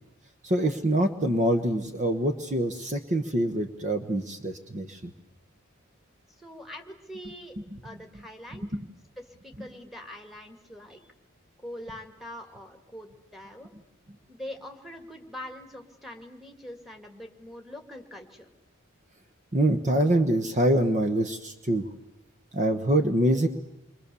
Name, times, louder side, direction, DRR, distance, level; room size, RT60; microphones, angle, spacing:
voice 1, 0.4-5.1 19.5-21.8 22.5-23.5, right 1 dB, 35° right, 7 dB, 1.1 m, -25 dB
voice 2, 6.4-7.5 7.8-8.7 9.2-11.0 11.6-13.7 14.3-18.5, left 1 dB, ahead, 4 dB, 2.2 m, -43 dB
28.5 x 23.5 x 7.0 m, 0.94 s
head